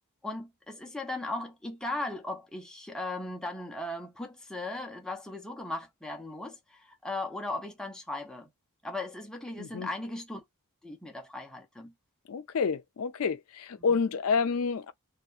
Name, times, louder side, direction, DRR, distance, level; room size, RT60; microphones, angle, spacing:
voice 1, 0.2-8.5 8.8-10.4 10.8-11.9, left 2 dB, 5° left, 0.5 m, -37 dB
voice 2, 9.6-9.9 12.3-14.9, left 5 dB, 70° left, 0.4 m, -29 dB
2.7 x 2.1 x 2.3 m
head